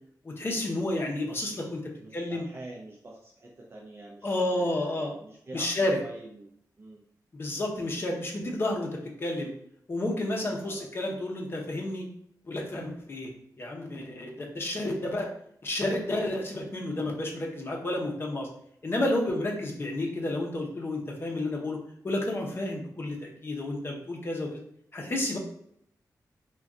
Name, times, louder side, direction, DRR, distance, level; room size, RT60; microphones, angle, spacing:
voice 1, 0.2-1.8 2.1-2.4 4.2-5.1 5.5-6.0 7.3-8.9 9.2-9.5 9.9-12.1 12.5-15.3 15.6-18.5 18.8-21.8 22.0-24.6 24.9-25.4, left 1 dB, 35° left, -1 dB, 0.7 m, -31 dB
voice 2, 2.0-6.5 6.8-7.0 10.6-10.9 19.1-19.4, right 1 dB, 35° right, -2 dB, 0.4 m, -45 dB
2.5 x 2.3 x 3.5 m, 0.68 s
wide cardioid pair, 130°, 7 cm